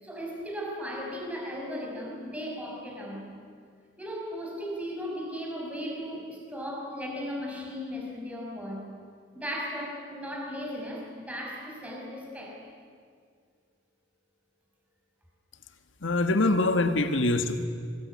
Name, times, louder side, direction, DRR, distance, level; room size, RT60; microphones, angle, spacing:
voice 1, 0.0-3.3 4.0-8.9 9.3-12.6, equal, 5° right, -2 dB, 5.8 m, -36 dB
voice 2, 16.0-17.7, left 2 dB, 75° left, 8 dB, 1.7 m, -24 dB
25.5 x 21.0 x 9.8 m, 2.1 s
head